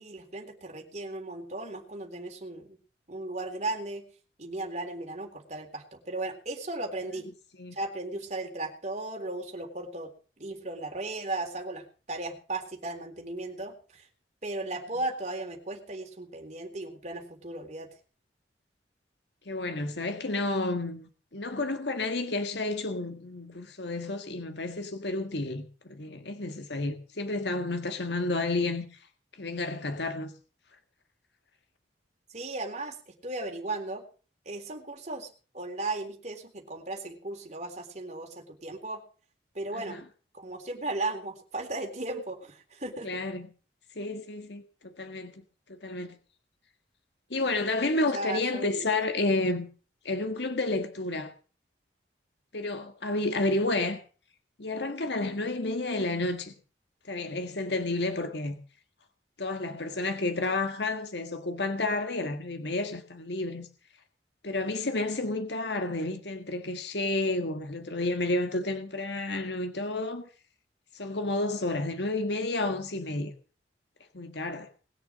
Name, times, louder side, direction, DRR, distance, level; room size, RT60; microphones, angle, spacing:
voice 1, 0.0-2.8 3.1-4.0 4.4-7.3 7.7-10.1 10.4-14.1 14.4-17.9 32.3-34.0 34.5-35.3 35.5-39.0 39.5-40.0 40.3-43.1 48.1-48.9, right 2 dB, 40° right, 3.6 m, -36 dB
voice 2, 19.4-29.0 29.4-30.3 39.9-40.0 43.0-43.5 43.9-45.4 45.7-46.2 47.3-49.7 50.0-51.3 52.5-54.0 54.6-56.5 57.1-58.6 59.4-63.7 64.4-70.3 70.9-73.3 74.1-74.7, left 2 dB, 70° left, 1.7 m, -31 dB
20.5 x 7.1 x 7.4 m
head